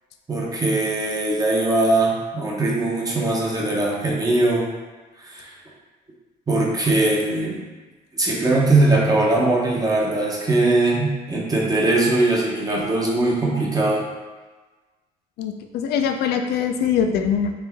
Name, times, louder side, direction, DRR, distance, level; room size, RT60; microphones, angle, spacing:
voice 1, 0.3-4.7 5.2-5.5 6.5-7.6 8.1-14.0 17.0-17.2, right 2 dB, 20° right, -3 dB, 0.7 m, -20 dB
voice 2, 15.4-17.5, left 7 dB, 75° left, 6 dB, 0.4 m, -22 dB
3.3 x 2.6 x 3.4 m, 1.3 s
cardioid pair, 110°, 17 cm